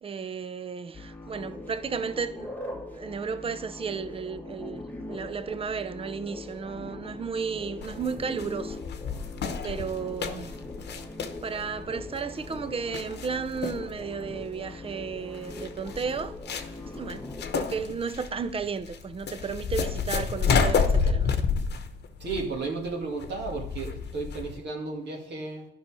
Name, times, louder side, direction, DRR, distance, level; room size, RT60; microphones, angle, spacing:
voice 1, 0.0-8.8 9.6-10.5 11.4-16.4 16.9-17.3 17.5-21.3, right 5 dB, 30° right, 0.6 m, -33 dB
sound 1, 0.9-17.5, left 2 dB, 10° left, 1.1 m, -41 dB
sound 2, 7.8-24.6, left 5 dB, 55° left, 1.0 m, -30 dB
voice 2, 22.2-25.7, right 3 dB, 60° right, 2.0 m, -33 dB
11.5 x 5.5 x 4.7 m
cardioid pair, 90°, 20 cm